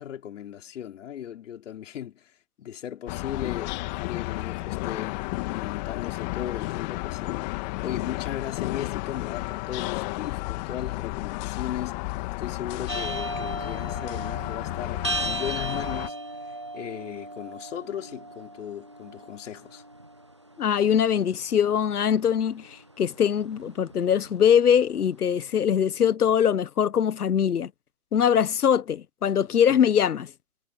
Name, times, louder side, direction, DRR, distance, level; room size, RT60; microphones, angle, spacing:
voice 1, 0.0-2.3 2.6-16.2 16.5-19.8 29.7-29.8, left 10 dB, 55° left, 4.7 m, -37 dB
sound 1, 3.1-16.1, left 22 dB, 30° left, 2.2 m, -32 dB
sound 2, 12.9-25.0, right 1 dB, 20° right, 0.3 m, -37 dB
voice 2, 20.6-27.7 28.1-30.3, left 8 dB, 85° left, 1.0 m, -22 dB
hypercardioid pair, 145°, 44 cm